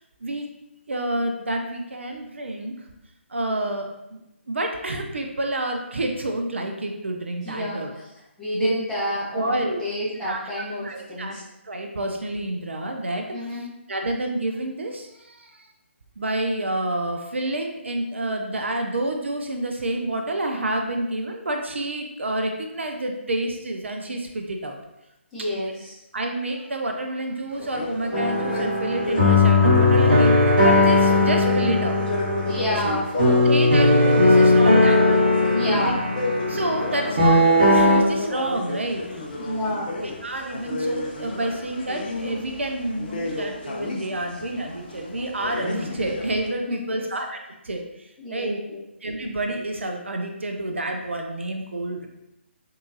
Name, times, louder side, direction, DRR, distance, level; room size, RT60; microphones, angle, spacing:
voice 1, 0.9-2.7 3.3-4.2 4.5-7.9 8.5-8.7 9.1-9.8 10.2-13.2 13.5-15.6 16.2-24.8 26.1-32.0 32.9-35.1 35.5-35.9 36.5-39.7 40.2-47.4 47.6-48.6 49.0-52.1, right 1 dB, 65° right, 3 dB, 0.4 m, -29 dB
voice 2, 7.4-8.1 8.4-11.4 13.3-13.7 25.3-25.9 32.4-33.4 35.5-36.0 39.4-39.9 46.7-47.0 48.2-48.8, left 1 dB, 5° left, -12 dB, 1.1 m, -30 dB
sound 1, 27.5-46.5, left 2 dB, 40° left, 0.5 m, -32 dB
sound 2, 28.1-38.0, left 2 dB, 45° right, 1.1 m, -18 dB
3.6 x 2.7 x 2.6 m, 0.89 s
figure-of-eight pair, 140°, 7 cm